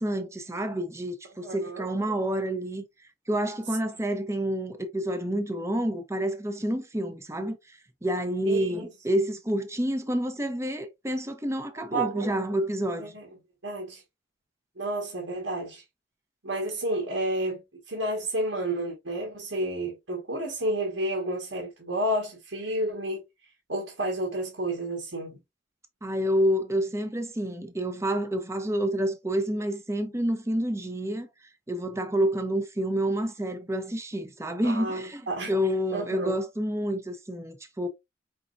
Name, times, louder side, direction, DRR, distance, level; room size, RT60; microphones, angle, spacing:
voice 1, 0.0-2.8 3.3-13.1 26.0-37.9, equal, 15° right, 0.8 m, -29 dB
voice 2, 1.4-1.9 8.4-8.8 11.9-12.3 13.1-13.3 13.6-14.0 14.8-15.8 16.4-17.6 17.9-23.2 23.7-25.4 34.6-35.5 35.9-36.3, right 1 dB, 90° right, 1.7 m, -30 dB
5.1 x 3.8 x 2.6 m
head